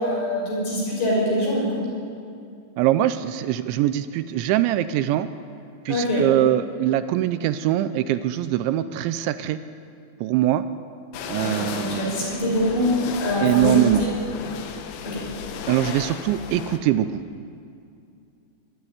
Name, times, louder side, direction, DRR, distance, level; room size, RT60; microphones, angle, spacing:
voice 1, 0.0-1.7 5.9-6.2 11.3-13.0 13.2-13.9 15.0-15.2, left 1 dB, 60° left, -4 dB, 8.2 m, -24 dB
voice 2, 2.8-5.3 5.9-9.6 10.2-10.6 11.3-12.1 13.4-14.0 15.7-17.2, right 13 dB, 80° right, 12 dB, 2.8 m, -22 dB
sound 1, 11.1-16.8, left 7 dB, 75° left, 3.6 m, -34 dB
22.5 x 12.5 x 9.8 m, 2.4 s
omnidirectional pair, 5.7 m